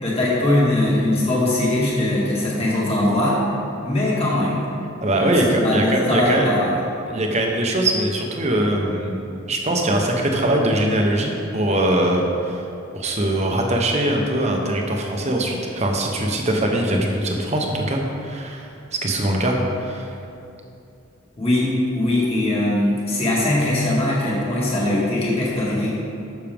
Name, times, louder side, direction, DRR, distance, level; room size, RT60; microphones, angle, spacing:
voice 1, 0.0-3.4 3.8-4.7 5.1-6.7 21.4-26.0, left 1 dB, 30° left, -6 dB, 2.1 m, -21 dB
voice 2, 5.0-6.5 7.1-9.2 9.5-12.6 12.9-18.7 19.0-20.0, right 1 dB, 35° right, 1 dB, 1.0 m, -21 dB
12.0 x 6.5 x 3.6 m, 2.7 s
head